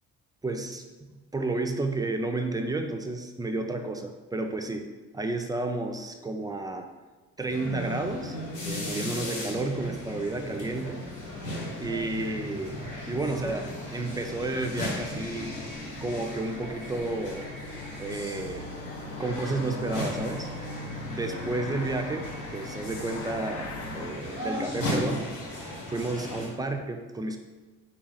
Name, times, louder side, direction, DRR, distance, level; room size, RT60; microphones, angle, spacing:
voice 1, 0.4-0.8 1.3-4.9 5.1-6.9 7.4-8.4 8.6-11.0 11.8-12.8 13.1-15.5 16.0-17.5 18.0-18.7 19.2-20.5 21.1-22.3 22.5-25.3 25.9-27.4, right 2 dB, 15° right, 5 dB, 0.4 m, -31 dB
sound 1, 7.5-26.5, left 1 dB, 90° left, 1.4 m, -36 dB
sound 2, 11.0-24.1, left 2 dB, 60° left, 0.7 m, -43 dB
4.2 x 3.0 x 3.8 m, 1.3 s
cardioid pair, 90°, 30 cm